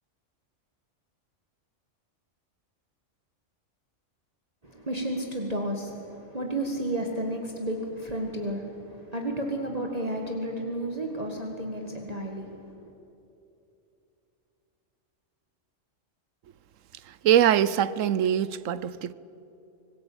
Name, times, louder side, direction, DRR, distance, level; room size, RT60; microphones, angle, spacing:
voice 1, 4.6-12.9, right 1 dB, 30° right, 1.9 m, -32 dB
voice 2, 17.1-19.1, right 10 dB, 90° right, 1.1 m, -23 dB
26.0 x 19.5 x 8.8 m
omnidirectional pair, 1.3 m